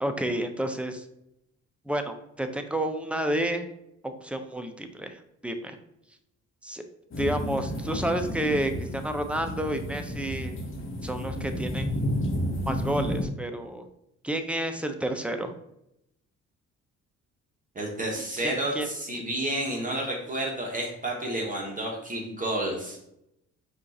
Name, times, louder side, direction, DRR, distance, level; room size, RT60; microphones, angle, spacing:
voice 1, 0.0-1.0 1.9-3.7 4.0-5.8 6.6-6.8 7.2-10.6 11.0-11.9 12.7-13.8 14.2-15.5 18.4-18.9, right 1 dB, 5° right, 6 dB, 0.5 m, -30 dB
sound 1, 7.1-13.3, equal, 45° left, 1.0 m, -31 dB
voice 2, 17.7-23.0, right 1 dB, 25° right, -1 dB, 1.1 m, -30 dB
5.1 x 2.5 x 4.1 m, 0.80 s
cardioid pair, 90°, 30 cm